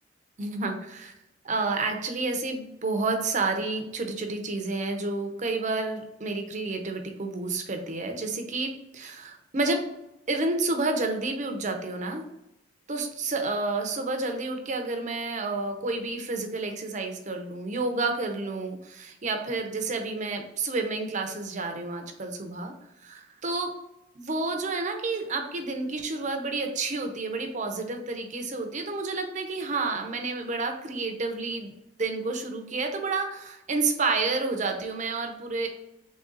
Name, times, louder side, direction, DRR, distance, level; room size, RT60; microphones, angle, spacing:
voice 1, 0.4-1.1 1.4-9.9 10.3-12.2 12.9-22.7 23.0-23.7 24.1-31.7 32.0-35.7, right 3 dB, 40° right, 4 dB, 0.7 m, -30 dB
3.7 x 3.5 x 3.9 m, 0.87 s
head